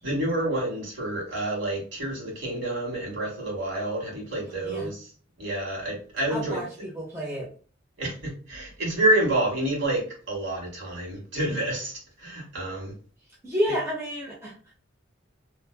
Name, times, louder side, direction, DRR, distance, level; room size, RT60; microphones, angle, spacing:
voice 1, 0.0-5.1 5.4-6.6 8.0-12.9, right 1 dB, 65° right, -3 dB, 1.4 m, -28 dB
voice 2, 6.3-7.5 13.4-14.7, equal, 15° right, -4 dB, 0.6 m, -30 dB
2.6 x 2.3 x 2.2 m, 0.39 s
head